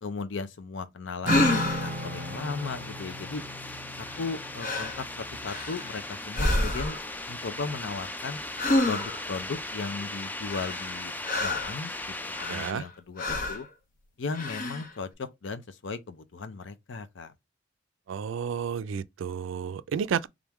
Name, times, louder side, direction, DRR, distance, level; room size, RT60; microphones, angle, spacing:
voice 1, 0.0-3.4 4.0-7.0 7.3-8.4 8.8-11.1 11.4-13.7 14.2-17.3, left 4 dB, 70° left, 0.6 m, -36 dB
Acoustic guitar / Strum, 1.2-5.7, right 1 dB, 40° right, 0.6 m, -35 dB
sound 1, 1.3-2.0 4.1-4.3 4.6-5.0 5.4-6.0 6.3-7.1 8.6-9.3 10.5-11.8 12.3-12.9 13.2-13.7 14.3-14.9, left 2 dB, 45° left, 0.8 m, -28 dB
sound 2, 1.3-12.7, left 2 dB, 10° left, 0.3 m, -38 dB
voice 2, 12.5-12.8 18.1-20.3, right 7 dB, 80° right, 0.3 m, -31 dB
3.7 x 3.5 x 3.0 m
head